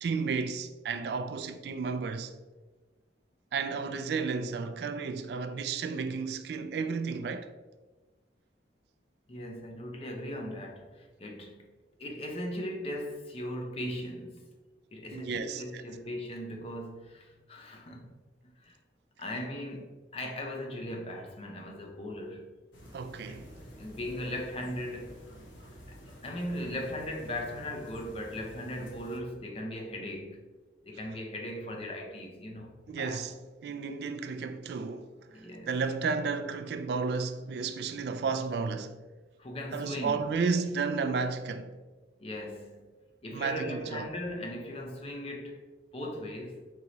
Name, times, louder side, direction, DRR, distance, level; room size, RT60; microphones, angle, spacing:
voice 1, 0.0-2.3 3.5-7.5 15.1-15.8 22.9-23.5 32.9-33.3 33.6-39.0 39.7-41.7 43.3-44.1, right 5 dB, 60° right, 0.3 m, -32 dB
voice 2, 9.3-11.7 12.0-14.5 14.9-18.1 18.6-18.8 19.2-22.5 23.3-23.5 23.8-25.2 25.9-30.5 30.8-33.2 34.0-34.1 35.3-35.7 39.4-40.3 42.2-42.9 43.2-45.6 45.9-46.7, left 1 dB, 35° left, 0.6 m, -38 dB
sound 1, 22.7-29.2, equal, 90° left, 0.9 m, -49 dB
4.6 x 2.9 x 3.9 m
head